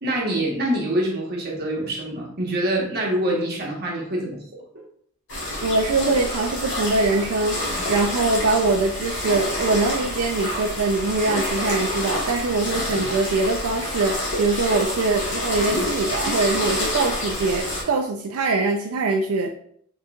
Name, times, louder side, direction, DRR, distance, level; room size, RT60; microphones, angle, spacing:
voice 1, 0.0-4.4 4.7-4.8, right 1 dB, 50° right, -2 dB, 1.2 m, -25 dB
sound 1, 5.3-17.8, left 1 dB, 60° left, 1.4 m, -28 dB
voice 2, 5.6-19.5, right 3 dB, 85° right, 3 dB, 0.4 m, -23 dB
4.3 x 3.8 x 2.3 m, 0.64 s
head